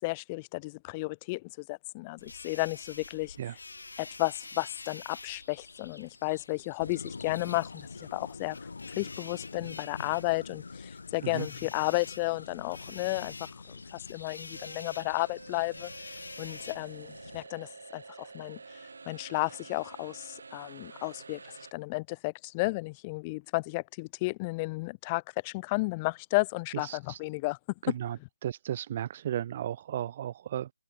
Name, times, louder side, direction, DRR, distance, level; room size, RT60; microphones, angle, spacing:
voice 1, 0.0-3.4 4.0-8.7 9.0-18.6 19.1-21.4 21.7-27.6 27.9-28.0, left 25 dB, 15° left, 0.8 m, -33 dB
sound 1, 2.2-17.0, left 3 dB, 80° left, 4.0 m, -48 dB
sound 2, 6.8-17.5, left 4 dB, 65° left, 3.8 m, -46 dB
sound 3, 14.5-21.7, right 4 dB, 60° right, 5.1 m, -49 dB
voice 2, 26.8-27.2 27.8-28.2 28.4-30.7, right 11 dB, 25° right, 0.3 m, -34 dB
hypercardioid pair, 175°, 0 cm